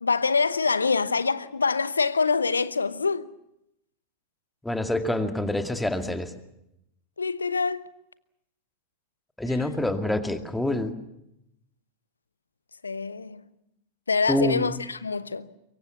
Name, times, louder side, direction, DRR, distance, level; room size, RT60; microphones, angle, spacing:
voice 1, 0.0-3.3 7.2-7.9 9.6-9.7 12.8-13.4 14.1-15.5, left 4 dB, 75° left, 0.9 m, -25 dB
voice 2, 4.6-6.3 9.4-10.9 14.3-14.7, left 1 dB, 5° left, 2.2 m, -26 dB
24.0 x 23.0 x 7.3 m
figure-of-eight pair, 90°, 0 cm